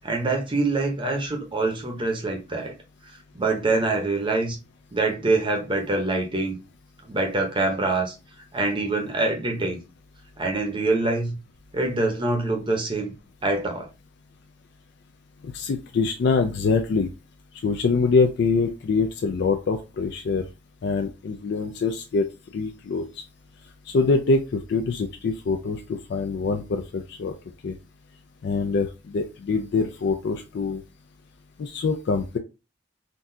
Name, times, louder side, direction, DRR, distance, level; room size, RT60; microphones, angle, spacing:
voice 1, 0.0-2.7 3.4-4.6 4.9-6.6 7.0-8.1 8.5-9.8 10.4-11.3 11.7-13.1 13.4-13.9, right 2 dB, 25° right, 0.8 m, -25 dB
voice 2, 15.4-17.1 17.6-20.4 20.8-22.2 22.5-23.2 23.9-27.3 27.6-27.7 28.4-30.8 31.6-32.4, left 4 dB, 60° left, 0.4 m, -24 dB
3.8 x 2.3 x 2.6 m
head